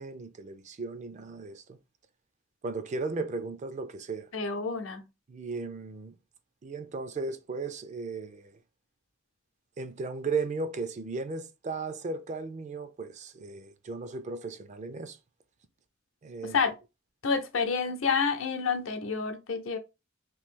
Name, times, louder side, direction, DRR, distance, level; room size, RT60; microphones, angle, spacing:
voice 1, 0.0-1.8 2.6-4.3 5.3-6.2 6.6-8.6 9.8-15.2 16.2-16.6, right 4 dB, 35° right, 0.4 m, -36 dB
voice 2, 4.3-5.0 16.4-16.7 17.2-19.8, left 5 dB, 80° left, 0.7 m, -29 dB
3.0 x 2.7 x 3.6 m
head